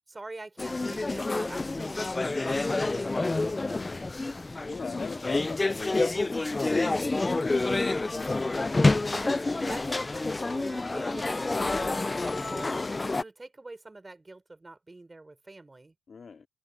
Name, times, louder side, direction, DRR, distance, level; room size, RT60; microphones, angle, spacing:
voice 1, 0.1-3.2 9.1-15.9, right 2 dB, 20° right, 4.4 m, -46 dB
sound 1, 0.6-13.2, left 2 dB, 20° left, 0.4 m, -28 dB
voice 2, 3.6-4.0 4.6-7.8 8.1-8.6 16.1-16.5, left 5 dB, 40° left, 2.4 m, -42 dB
cardioid pair, 90°, 0 cm